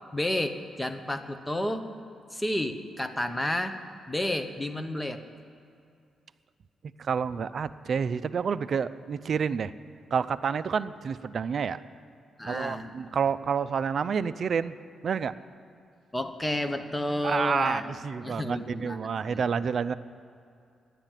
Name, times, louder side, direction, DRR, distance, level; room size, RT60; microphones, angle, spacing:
voice 1, 0.1-1.9 2.3-3.8 4.1-5.2 12.4-12.9 16.1-17.8 18.2-19.4, left 1 dB, 10° left, 8 dB, 1.0 m, -31 dB
voice 2, 7.0-9.7 10.1-11.8 12.4-14.7 15.0-15.3 17.2-19.9, right 6 dB, 55° right, 13 dB, 0.5 m, -29 dB
12.0 x 10.5 x 9.0 m, 2.4 s
cardioid pair, 105°, 0 cm